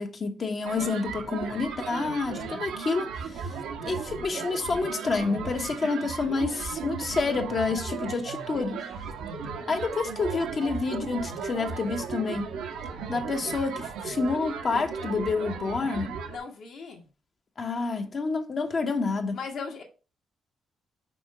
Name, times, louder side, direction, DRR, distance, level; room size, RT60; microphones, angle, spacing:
voice 1, 0.0-8.9 9.7-12.5 13.1-16.2 17.6-19.4, left 4 dB, 45° left, 1.1 m, -29 dB
sound 1, 0.6-16.4, right 6 dB, 90° right, 1.3 m, -36 dB
voice 2, 16.3-17.1 19.3-19.8, left 5 dB, 65° left, 2.1 m, -37 dB
6.0 x 4.4 x 4.9 m
cardioid pair, 90°, 0 cm